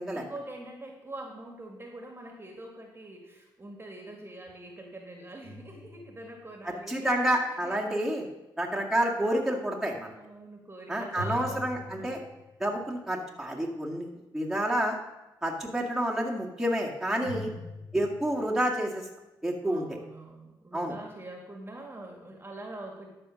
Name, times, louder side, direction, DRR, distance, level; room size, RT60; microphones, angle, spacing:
voice 1, 0.1-7.8 10.1-12.2 17.2-17.8 19.6-23.1, right 1 dB, 25° right, 1 dB, 2.0 m, -45 dB
sound 1, 5.4-6.6 11.2-12.7 17.2-18.4, left 1 dB, 25° left, 3.0 m, -42 dB
voice 2, 6.6-8.2 8.6-10.1 10.9-12.2 12.6-14.1 14.3-15.0 15.4-17.5 17.9-19.0 19.4-19.8 20.7-20.9, right 1 dB, 5° right, -3 dB, 2.1 m, -29 dB
12.0 x 4.4 x 6.4 m, 0.97 s
cardioid pair, 65°, 9 cm